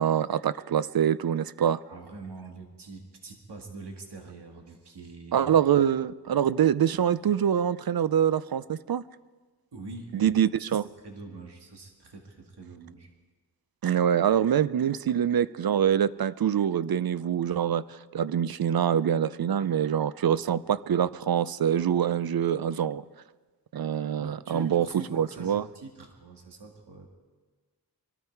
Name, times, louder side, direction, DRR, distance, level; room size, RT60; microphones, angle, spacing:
voice 1, 0.0-1.8 5.3-9.0 10.1-10.9 13.8-23.0 23.7-24.9 25.1-25.6, right 9 dB, 60° right, 17 dB, 0.5 m, -25 dB
voice 2, 1.8-5.4 9.7-10.3 10.6-13.1 24.2-27.1, right 3 dB, 80° right, 2 dB, 2.0 m, -44 dB
23.0 x 13.0 x 4.6 m, 1.3 s
cardioid pair, 50°, 40 cm